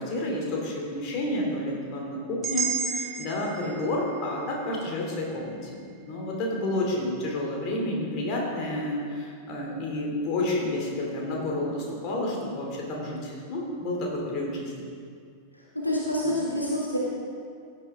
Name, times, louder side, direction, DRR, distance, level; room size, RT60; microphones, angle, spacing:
voice 1, 0.0-14.9 16.2-16.3, left 1 dB, 40° left, -2 dB, 2.7 m, -30 dB
sound 1, 2.4-6.5, right 6 dB, 25° right, 1.2 m, -34 dB
voice 2, 15.5-17.0, left 1 dB, 85° left, -4 dB, 1.8 m, -28 dB
15.5 x 8.6 x 3.6 m, 2.3 s
figure-of-eight pair, 90°, 0 cm